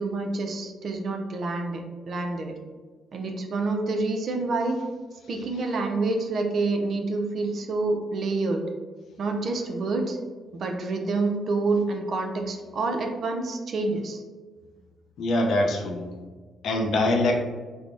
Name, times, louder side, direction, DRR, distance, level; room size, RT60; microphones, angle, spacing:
voice 1, 0.0-2.5 3.1-4.8 5.3-8.6 9.2-10.2 10.6-14.2, right 3 dB, 55° right, 3 dB, 0.4 m, -27 dB
voice 2, 15.2-16.0 16.6-17.4, left 1 dB, 70° left, 1 dB, 0.4 m, -23 dB
3.3 x 2.0 x 2.5 m, 1.4 s
cardioid pair, 90°, 0 cm